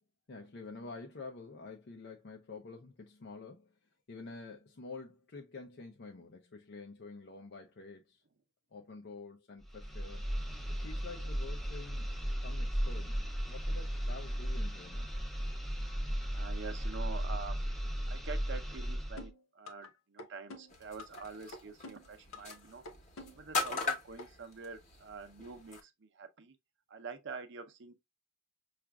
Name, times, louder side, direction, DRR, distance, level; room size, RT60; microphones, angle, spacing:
voice 1, 0.3-3.7 4.1-8.2 8.7-10.2 10.8-12.1 12.4-15.1, left 3 dB, 55° left, 0.5 m, -48 dB
sound 1, 9.6-19.3, equal, ahead, 0.5 m, -36 dB
voice 2, 16.3-17.6 18.1-22.8 23.3-26.5 26.9-27.9, right 4 dB, 60° right, 0.7 m, -46 dB
sound 2, 19.2-19.9 20.2-21.2 21.5-22.6 22.9-23.9 24.2-24.3, left 2 dB, 90° left, 0.8 m, -48 dB
sound 3, 20.7-25.8, left 4 dB, 40° left, 1.0 m, -40 dB
5.8 x 2.4 x 2.2 m
head